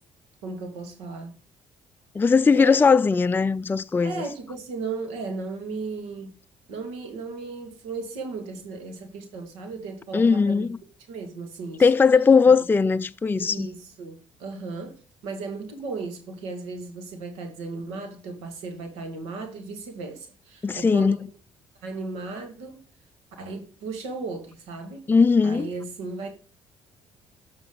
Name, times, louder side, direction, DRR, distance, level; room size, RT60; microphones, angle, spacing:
voice 1, 0.4-1.3 2.5-2.8 4.0-6.4 6.7-10.7 11.1-11.9 13.4-21.2 21.8-22.8 23.4-25.0 25.4-26.3, right 4 dB, 85° right, 2.1 m, -35 dB
voice 2, 2.1-4.2 10.1-10.8 11.8-13.7 20.6-21.2 25.1-25.7, left 5 dB, 20° left, 0.4 m, -19 dB
7.7 x 5.9 x 3.9 m
supercardioid pair, 65°, 11 cm